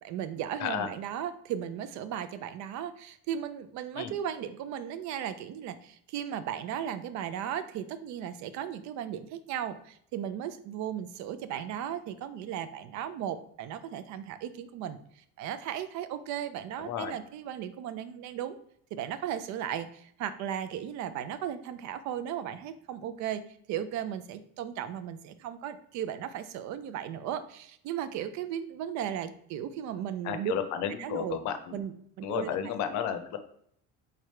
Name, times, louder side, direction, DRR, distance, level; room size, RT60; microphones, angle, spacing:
voice 1, 0.0-18.6 18.9-23.4 23.7-30.5 31.0-31.4 31.7-32.6, right 10 dB, 65° right, 12 dB, 0.5 m, -36 dB
voice 2, 16.8-17.1 30.2-31.8 32.2-33.4, left 9 dB, 65° left, 8 dB, 0.7 m, -32 dB
3.7 x 3.3 x 4.4 m, 0.66 s
cardioid pair, 150°, 31 cm